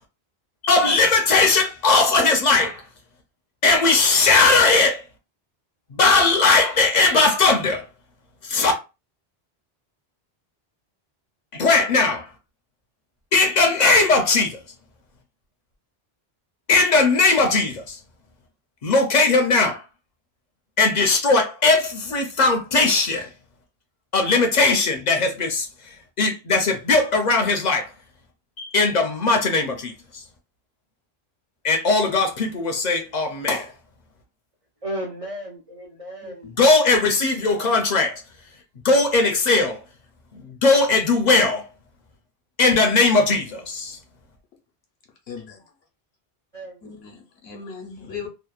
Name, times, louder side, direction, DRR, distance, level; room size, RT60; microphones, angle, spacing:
voice 1, 0.6-2.8 3.6-5.0 5.9-7.9 8.4-8.7 11.5-12.3 13.3-14.6 16.7-18.0 18.8-19.8 20.8-23.3 24.1-27.9 28.6-30.2 31.6-33.7 36.5-38.2 38.8-39.8 40.3-41.7 42.6-44.0, left 3 dB, 55° left, 0.5 m, -19 dB
voice 2, 34.8-36.5 46.5-46.9, equal, 50° right, 0.4 m, -34 dB
voice 3, 46.8-48.3, left 6 dB, 75° left, 1.0 m, -37 dB
2.8 x 2.0 x 2.3 m
omnidirectional pair, 1.1 m